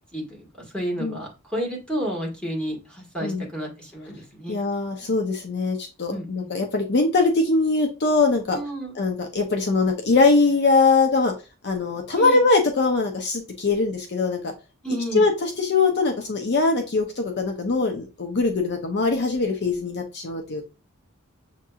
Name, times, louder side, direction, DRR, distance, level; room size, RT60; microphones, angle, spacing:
voice 1, 0.1-0.5 0.7-4.6 6.1-6.5 8.5-9.0 12.1-12.4 14.8-15.3, equal, 5° left, -3 dB, 1.7 m, -31 dB
voice 2, 4.5-8.6 9.0-11.3 11.6-14.5 15.1-20.7, left 3 dB, 55° left, 3 dB, 0.6 m, -22 dB
7.2 x 2.8 x 2.3 m, 0.30 s
head